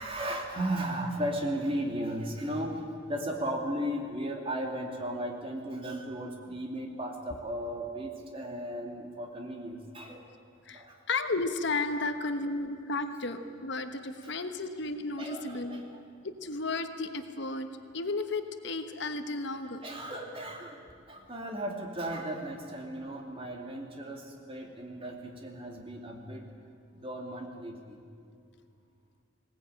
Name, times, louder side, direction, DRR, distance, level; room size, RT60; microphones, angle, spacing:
voice 1, 0.0-2.8 3.1-10.2 10.7-11.0 14.2-14.3 15.2-16.0 19.6-26.4 26.9-28.0, right 1 dB, 25° right, 2 dB, 2.7 m, -36 dB
voice 2, 10.7-15.8 16.2-17.7 17.9-19.8, left 3 dB, 60° left, 8 dB, 1.2 m, -33 dB
20.0 x 18.5 x 9.0 m, 2.3 s
head